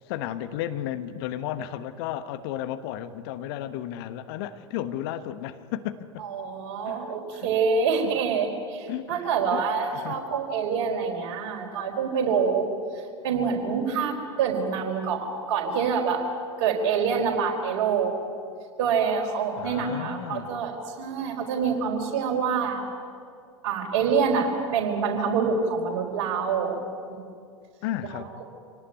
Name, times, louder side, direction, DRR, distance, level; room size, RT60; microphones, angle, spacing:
voice 1, 0.1-6.2 6.9-7.5 8.0-8.1 8.9-9.6 9.9-10.2 19.6-20.6 27.8-28.3, left 11 dB, 50° left, 11 dB, 1.2 m, -34 dB
voice 2, 6.2-12.7 13.2-16.2 16.6-18.1 18.8-22.8 23.6-26.8 27.1-27.2 28.1-28.2, right 6 dB, 50° right, 2 dB, 4.5 m, -26 dB
26.0 x 18.5 x 9.3 m, 2.3 s
figure-of-eight pair, 85°, 16 cm